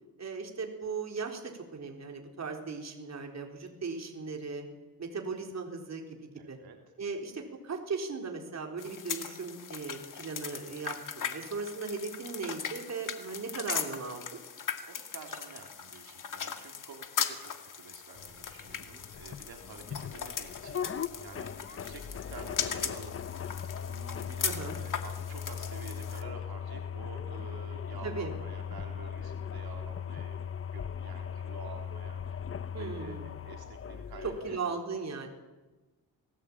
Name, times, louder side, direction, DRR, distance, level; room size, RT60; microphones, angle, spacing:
voice 1, 0.2-4.6 5.0-6.6 7.0-14.2 24.4-24.8 28.0-28.3 32.7-33.3 34.2-35.3, right 4 dB, 45° right, 2 dB, 4.1 m, -37 dB
voice 2, 6.4-6.8 14.8-23.5 23.9-32.4 32.7-35.0, right 5 dB, 70° right, 3 dB, 3.7 m, -50 dB
sound 1, 8.8-26.2, left 7 dB, 55° left, 2.3 m, -39 dB
sound 2, 18.2-34.6, left 7 dB, 35° left, 0.8 m, -39 dB
28.0 x 19.0 x 8.8 m, 1.1 s
wide cardioid pair, 150°, 38 cm